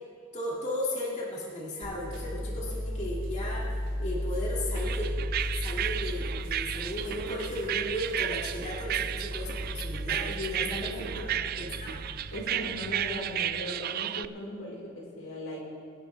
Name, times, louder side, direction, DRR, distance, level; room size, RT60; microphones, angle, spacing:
voice 1, 0.3-3.7 4.0-5.2 5.6-12.0, left 1 dB, 35° left, -5 dB, 2.3 m, -35 dB
sound 1, 1.8-13.4, equal, 65° right, 4.2 m, -36 dB
sound 2, 4.8-14.3, right 11 dB, 45° right, 0.3 m, -33 dB
voice 2, 10.3-11.6 12.3-15.6, left 1 dB, 90° left, -3 dB, 4.2 m, -38 dB
24.0 x 11.5 x 3.4 m, 2.2 s
head